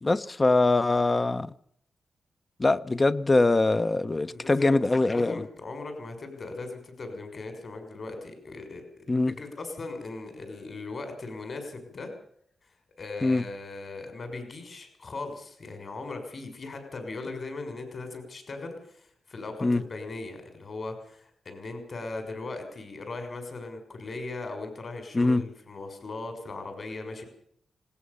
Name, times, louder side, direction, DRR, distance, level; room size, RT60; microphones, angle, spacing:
voice 1, 0.0-1.5 2.6-5.4 9.1-9.3 13.2-13.4 19.6-19.8 25.1-25.4, left 2 dB, 25° left, 0.9 m, -23 dB
voice 2, 4.3-4.8 5.1-9.0 9.4-12.1 12.6-12.7 13.0-27.2, left 3 dB, 45° left, 6.5 m, -38 dB
19.5 x 18.5 x 7.0 m
cardioid pair, 100°, 0 cm